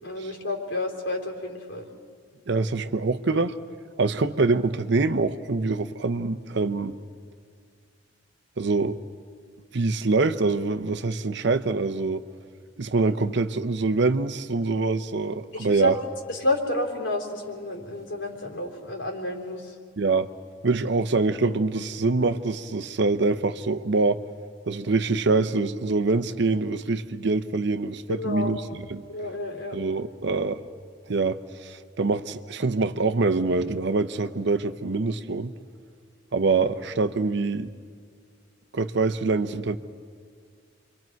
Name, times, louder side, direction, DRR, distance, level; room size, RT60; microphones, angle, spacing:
voice 1, 0.0-1.9 15.5-16.0 16.3-19.7 28.1-28.5 29.1-29.8, left 1 dB, 80° left, 0 dB, 3.6 m, -30 dB
voice 2, 2.5-3.5 4.0-7.0 8.6-9.0 9.7-12.2 12.8-15.9 20.0-20.3 20.6-24.2 24.7-28.6 28.9-29.0 29.7-30.6 31.1-35.5 36.3-37.7 38.7-39.8, right 3 dB, 65° right, 11 dB, 0.8 m, -24 dB
29.5 x 24.0 x 4.6 m, 2.1 s
head